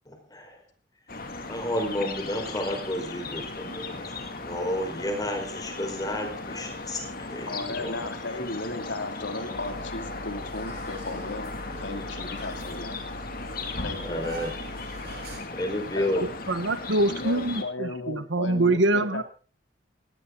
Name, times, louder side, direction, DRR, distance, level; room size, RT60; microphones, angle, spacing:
voice 1, 0.1-0.6 1.5-8.0 14.0-14.5 15.5-16.2, left 1 dB, 20° left, 4 dB, 4.8 m, -31 dB
sound 1, 1.1-17.6, left 3 dB, 50° left, 2.5 m, -37 dB
voice 2, 7.5-11.5 11.8-12.9 13.8-14.4 16.0-16.3 17.1-19.2, left 2 dB, 75° left, 7 dB, 2.6 m, -35 dB
sound 2, 9.5-15.4, right 1 dB, 55° right, 6.3 m, -42 dB
voice 3, 16.5-19.2, right 2 dB, 75° right, 12 dB, 1.4 m, -24 dB
18.5 x 18.0 x 3.9 m, 0.37 s
head